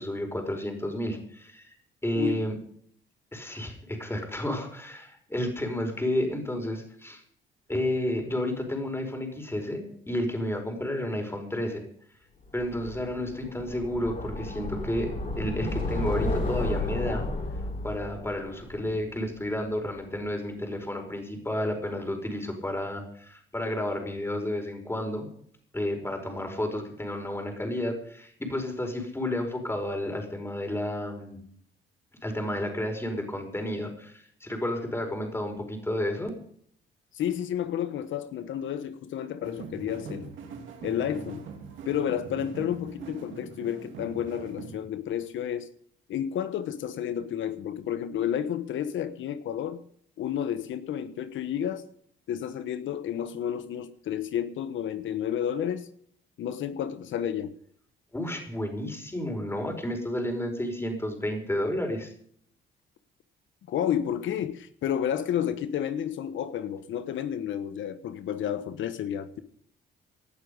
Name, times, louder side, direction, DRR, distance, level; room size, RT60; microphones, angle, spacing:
voice 1, 0.0-1.7 2.0-2.5 3.3-7.2 7.7-11.8 12.5-15.1 15.4-17.3 17.8-25.3 25.7-31.4 32.2-36.3 58.1-62.1, left 1 dB, 10° left, 5.0 m, -31 dB
sound 1, 12.6-19.6, left 2 dB, 40° left, 6.5 m, -33 dB
voice 2, 37.1-40.3 40.8-41.4 41.8-45.7 46.1-49.9 50.2-51.9 52.3-55.9 56.4-57.6 63.7-69.4, left 9 dB, 75° left, 1.2 m, -31 dB
sound 2, 39.4-44.8, right 5 dB, 75° right, 3.1 m, -42 dB
19.0 x 11.5 x 5.3 m
cardioid pair, 90°, 20 cm